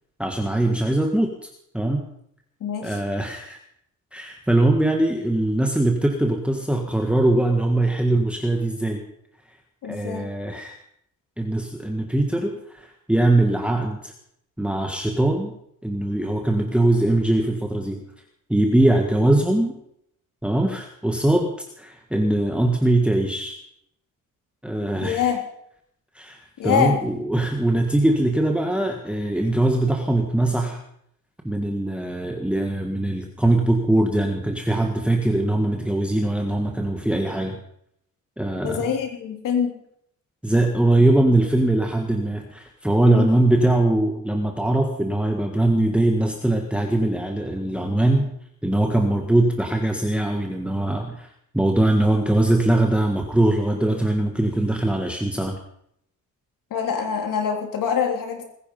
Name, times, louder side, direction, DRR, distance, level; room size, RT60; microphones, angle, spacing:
voice 1, 0.2-1.3 1.7-2.0 2.8-3.6 4.1-9.0 9.9-10.8 11.4-14.1 14.6-15.5 15.8-18.0 18.5-19.8 20.4-23.5 24.6-25.2 26.1-30.8 31.4-37.6 38.4-38.9 40.4-48.3 48.6-51.3 51.5-55.5, right 1 dB, 5° right, 2 dB, 1.7 m, -21 dB
voice 2, 2.6-3.0 9.8-10.3 25.0-25.4 26.6-27.0 38.6-39.8 43.1-43.3 56.7-58.4, left 7 dB, 85° left, 3 dB, 3.5 m, -24 dB
20.5 x 10.0 x 5.5 m, 0.72 s
cardioid pair, 110°, 32 cm